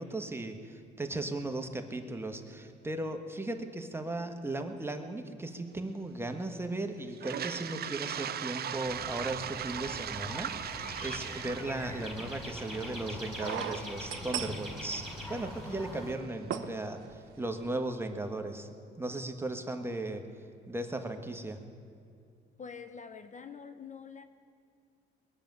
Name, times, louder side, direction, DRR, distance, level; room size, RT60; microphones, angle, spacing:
voice 1, 0.0-15.0 15.3-18.7 19.0-20.3 20.7-21.6, right 2 dB, 10° right, 5 dB, 1.4 m, -37 dB
Toilet flush, 7.1-15.0, right 9 dB, 50° right, 0.6 m, -39 dB
sound 1, 8.9-16.1, left 1 dB, 5° left, 4.7 m, -43 dB
sound 2, 12.8-12.9 13.4-15.5 15.9-16.0 16.5-16.7 17.1-17.3 17.5-17.7, right 10 dB, 75° right, 0.9 m, -37 dB
voice 2, 22.6-24.2, left 6 dB, 40° left, 9 dB, 0.8 m, -45 dB
21.0 x 7.0 x 9.3 m, 2.4 s
cardioid pair, 90°, 20 cm